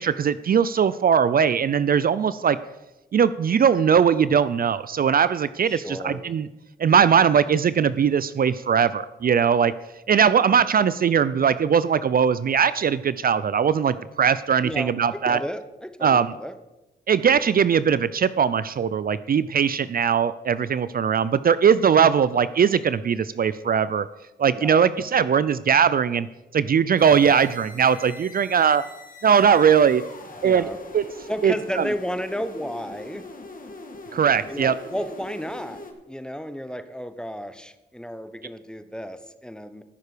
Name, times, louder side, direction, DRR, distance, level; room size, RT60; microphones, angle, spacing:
voice 1, 0.0-2.6 3.1-6.5 6.8-9.7 10.1-15.4 16.0-16.3 17.1-24.1 24.4-26.3 26.5-28.8 29.2-30.0 30.4-30.7 30.9-31.0 31.4-31.8 34.1-34.7, right 7 dB, 50° right, 15 dB, 0.5 m, -20 dB
voice 2, 5.7-6.2 14.6-16.6 24.5-24.8 30.4-30.8 31.3-33.3 34.5-39.8, equal, 5° left, 11 dB, 1.0 m, -33 dB
sound 1, 27.0-35.9, left 2 dB, 45° left, 1.8 m, -42 dB
14.5 x 6.6 x 5.0 m, 0.99 s
cardioid pair, 60°, 19 cm